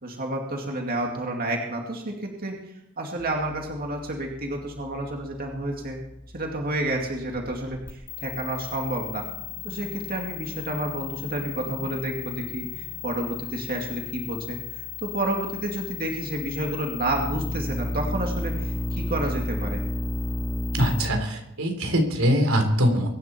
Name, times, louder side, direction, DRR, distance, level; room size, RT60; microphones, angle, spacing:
voice 1, 0.0-2.6 3.0-6.0 6.3-9.2 9.6-19.8, right 1 dB, 45° right, 1 dB, 2.4 m, -30 dB
sound 1, 3.2-21.1, left 3 dB, 10° left, 2.5 m, -34 dB
voice 2, 20.7-23.1, equal, 85° right, 4 dB, 3.6 m, -22 dB
23.5 x 11.0 x 4.5 m, 0.84 s
head